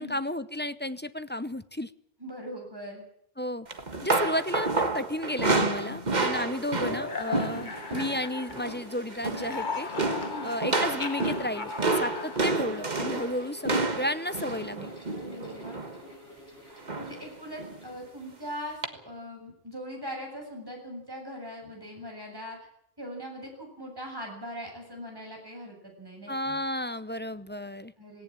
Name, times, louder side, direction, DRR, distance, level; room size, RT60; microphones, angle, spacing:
voice 1, 0.0-1.9 3.4-3.7 4.0-9.9 10.4-14.9 26.3-27.9, left 1 dB, 10° left, 13 dB, 0.7 m, -33 dB
voice 2, 2.2-3.0 6.4-6.5 10.3-10.6 15.1-15.8 17.0-22.6 23.0-26.6 28.0-28.2, equal, 20° right, 0 dB, 7.7 m, -41 dB
sound 1, 3.7-8.2 8.5-8.8 9.1-9.6 10.0-16.0 16.9-17.2 17.6-17.8 18.8-18.9, right 3 dB, 45° right, 1.7 m, -29 dB
sound 2, 5.4-8.9 9.2-13.2, left 4 dB, 50° left, 1.6 m, -37 dB
Mechanical fan, 6.5-18.9, equal, 80° left, 7.2 m, -49 dB
18.0 x 17.5 x 8.9 m, 0.73 s
omnidirectional pair, 1.1 m